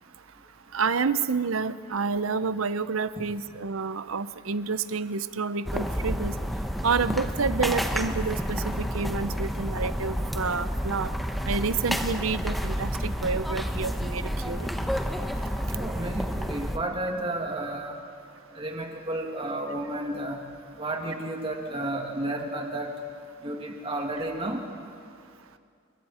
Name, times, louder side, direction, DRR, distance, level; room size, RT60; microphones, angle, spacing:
voice 1, 0.7-6.4 6.8-11.1 11.5-14.7, right 5 dB, 85° right, 13 dB, 0.7 m, -29 dB
sound 1, 5.7-16.8, equal, ahead, 1.0 m, -30 dB
voice 2, 15.8-18.0 18.6-20.4 20.8-22.9 23.4-24.6, right 1 dB, 25° right, 1 dB, 2.3 m, -32 dB
29.0 x 23.0 x 4.4 m, 2.3 s
head